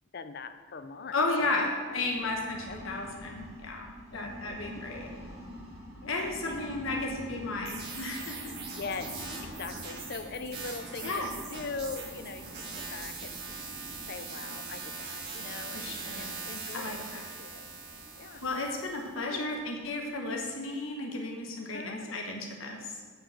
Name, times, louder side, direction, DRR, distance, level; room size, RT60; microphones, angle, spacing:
voice 1, 0.1-2.1 2.7-2.8 4.1-4.8 6.0-6.6 6.9-7.0 8.8-9.1 9.4-12.5 12.8-13.4 14.1-17.7 18.2-18.4 19.1-19.6 21.7-22.2, left 4 dB, 50° left, 10 dB, 0.5 m, -42 dB
voice 2, 1.1-5.1 6.1-8.6 11.0-11.3 15.7-16.3 16.7-17.2 18.4-23.0, left 2 dB, 80° left, 1 dB, 1.0 m, -34 dB
sound 1, 1.8-20.4, equal, 15° right, 2.5 m, -47 dB
sound 2, 7.7-19.1, right 4 dB, 50° right, 2.0 m, -42 dB
8.9 x 4.7 x 7.3 m, 1.6 s
head